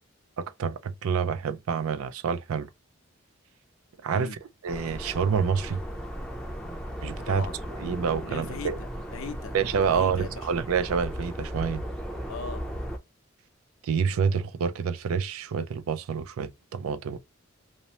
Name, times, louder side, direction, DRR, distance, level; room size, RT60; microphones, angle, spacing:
voice 1, 0.4-2.7 4.0-4.3 4.6-5.8 7.0-7.5 7.8-8.8 9.5-11.8 13.8-17.2, right 6 dB, 85° right, 0.4 m, -27 dB
sound 1, 4.7-13.0, equal, 5° left, 0.4 m, -36 dB
voice 2, 7.2-7.6 8.2-9.5 9.9-10.5 12.3-12.6, left 5 dB, 70° left, 0.5 m, -39 dB
2.7 x 2.0 x 2.9 m
head